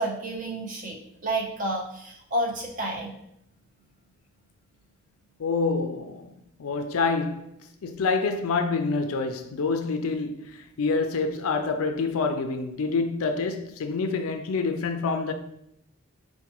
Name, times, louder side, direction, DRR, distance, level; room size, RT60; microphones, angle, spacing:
voice 1, 0.0-3.1, right 1 dB, 35° right, 0.6 m, -30 dB
voice 2, 5.4-6.3 6.6-7.5 7.8-15.3, left 4 dB, 75° left, 0.4 m, -27 dB
4.5 x 2.2 x 2.9 m
head